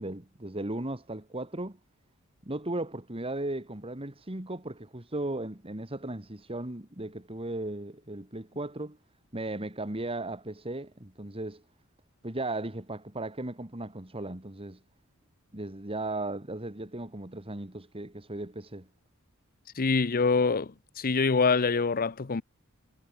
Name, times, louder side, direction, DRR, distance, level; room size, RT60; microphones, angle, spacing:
voice 1, 0.0-1.8 2.4-9.0 9.3-11.6 12.2-14.8 15.5-18.9, right 2 dB, 25° right, 2.4 m, -36 dB
voice 2, 19.8-22.4, left 4 dB, 45° left, 0.7 m, -25 dB
head